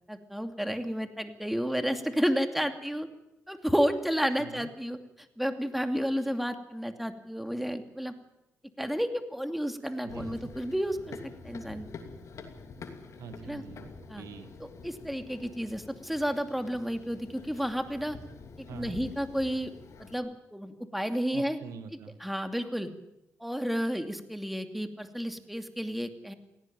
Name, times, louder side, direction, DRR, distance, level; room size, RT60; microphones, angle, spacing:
voice 1, 0.1-3.1 3.5-5.0 5.4-8.1 8.8-11.2 11.4-11.9 13.5-13.6 14.1-14.2 14.6-18.2 18.7-19.7 20.0-21.6 22.2-22.9 23.4-26.3, equal, ahead, 7 dB, 2.6 m, -31 dB
voice 2, 4.4-4.7 10.0-10.5 13.2-14.5 18.7-19.0 21.3-22.2, right 6 dB, 75° right, 10 dB, 1.7 m, -45 dB
Run, 10.1-20.1, left 4 dB, 65° left, 2.9 m, -47 dB
18.0 x 17.5 x 8.9 m, 0.87 s
supercardioid pair, 55°, 6 cm